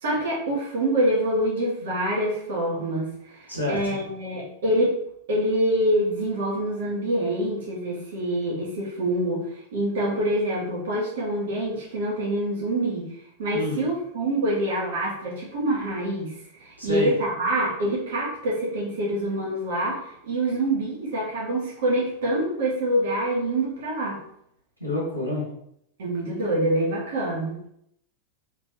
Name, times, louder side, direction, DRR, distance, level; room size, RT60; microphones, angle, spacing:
voice 1, 0.0-5.0 5.3-13.1 13.4-24.2 26.0-27.6, right 1 dB, 60° right, -4 dB, 1.5 m, -26 dB
voice 2, 3.5-4.0 13.5-13.8 16.8-17.1 24.8-25.5, left 1 dB, 90° right, -5 dB, 1.2 m, -28 dB
3.6 x 3.3 x 3.0 m, 0.72 s
figure-of-eight pair, 90°, 0 cm